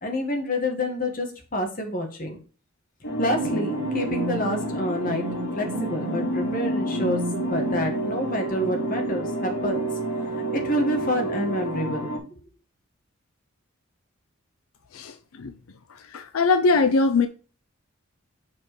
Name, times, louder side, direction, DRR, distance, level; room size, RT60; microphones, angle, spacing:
voice 1, 0.0-2.4 3.2-5.3 5.5-9.8 10.5-12.1, left 1 dB, 40° left, 1.7 m, -28 dB
sound 1, 3.0-12.2, left 1 dB, 65° left, 3.4 m, -30 dB
sound 2, 3.3-12.2, right 5 dB, 85° right, 0.6 m, -32 dB
voice 2, 14.9-15.5 15.9-17.3, left 3 dB, 80° left, 0.5 m, -22 dB
5.9 x 4.7 x 4.7 m
head